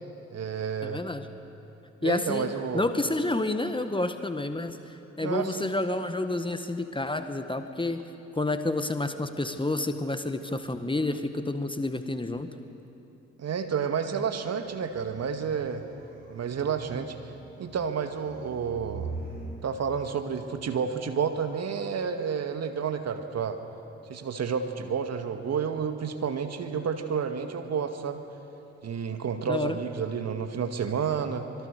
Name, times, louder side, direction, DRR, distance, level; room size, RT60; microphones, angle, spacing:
voice 1, 0.3-1.0 2.0-2.8 5.2-5.7 13.4-15.8 16.3-17.3 17.6-19.1 19.6-23.6 24.1-28.2 28.8-31.4, right 6 dB, 50° right, 6 dB, 2.0 m, -30 dB
voice 2, 0.8-1.3 2.0-2.5 2.7-8.0 8.4-12.5 29.5-29.8, left 2 dB, 15° left, 8 dB, 1.7 m, -29 dB
sound 1, 14.6-19.5, right 4 dB, 80° right, 7.1 m, -43 dB
25.5 x 24.0 x 6.8 m, 3.0 s
figure-of-eight pair, 40°, 33 cm